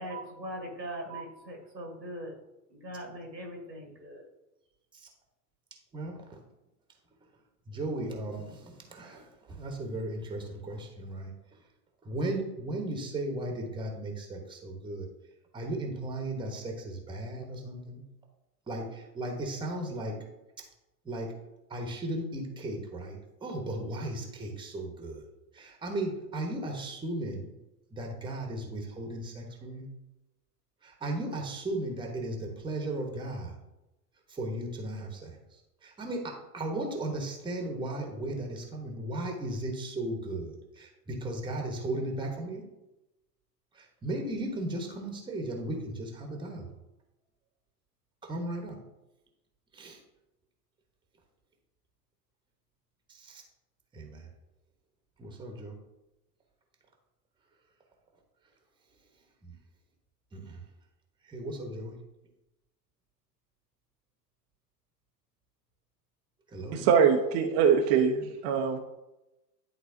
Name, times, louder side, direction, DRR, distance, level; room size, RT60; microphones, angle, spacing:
voice 1, 0.0-2.4 2.7-4.2, right 1 dB, 90° right, 2 dB, 1.8 m, -40 dB
voice 2, 5.9-6.4 7.7-11.3 12.0-15.1 15.5-18.0 18.7-20.2 21.0-21.4 21.7-25.2 25.5-27.5 27.9-29.9 30.8-33.6 34.3-35.4 35.8-42.7 43.7-46.7 48.2-48.8 49.7-50.0 53.1-53.4 53.9-54.3 55.2-55.7 59.4-59.6 60.3-60.6 61.3-62.0 66.5-66.9, right 1 dB, 10° right, 3 dB, 1.1 m, -36 dB
voice 3, 66.7-68.8, right 7 dB, 30° right, 3 dB, 0.7 m, -23 dB
11.0 x 4.0 x 2.7 m, 0.95 s
figure-of-eight pair, 95°, 50 cm